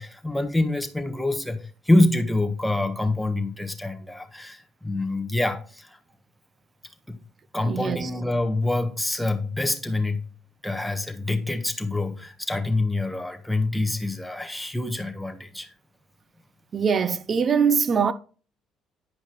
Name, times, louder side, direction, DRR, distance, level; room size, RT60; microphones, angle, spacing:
voice 1, 0.0-6.0 7.1-7.2 7.5-10.2 10.6-15.7, left 2 dB, 5° left, 1.3 m, -26 dB
voice 2, 7.7-8.1 16.7-18.1, right 6 dB, 40° right, 0.7 m, -22 dB
10.5 x 5.3 x 3.1 m
supercardioid pair, 90°, 0 cm